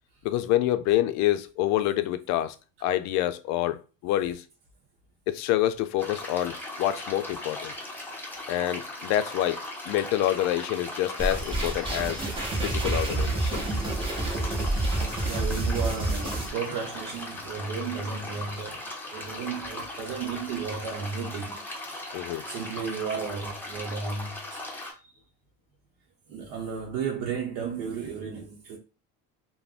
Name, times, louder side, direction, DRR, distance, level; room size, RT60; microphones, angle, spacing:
voice 1, 0.2-2.6 2.8-4.4 5.3-7.7 8.5-12.2 12.6-13.6 22.1-22.5, left 13 dB, 65° left, 0.4 m, -27 dB
sound 1, 6.0-24.9, left 1 dB, 5° left, 0.7 m, -38 dB
sound 2, 11.2-16.5, right 2 dB, 20° right, 1.1 m, -28 dB
voice 2, 15.3-21.6 21.9-22.0 22.5-24.6 25.0-25.2 26.3-28.8, right 6 dB, 90° right, 0.7 m, -34 dB
2.4 x 2.1 x 3.4 m
cardioid pair, 115°, 30 cm